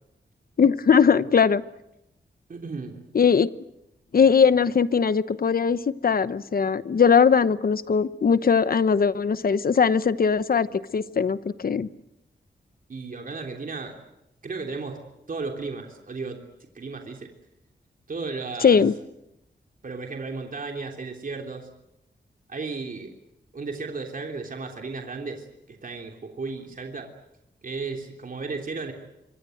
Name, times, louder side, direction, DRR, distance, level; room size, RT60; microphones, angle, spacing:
voice 1, 0.6-1.6 3.1-3.5 4.1-11.9 18.6-18.9, left 6 dB, 50° left, 14 dB, 1.0 m, -20 dB
voice 2, 2.5-3.0 12.9-14.0 14.4-17.3 18.1-18.8 19.8-21.7 22.5-23.1 23.5-27.1 27.6-28.9, right 4 dB, 50° right, 3 dB, 3.2 m, -34 dB
25.5 x 24.5 x 7.9 m, 0.87 s
wide cardioid pair, 140°, 19 cm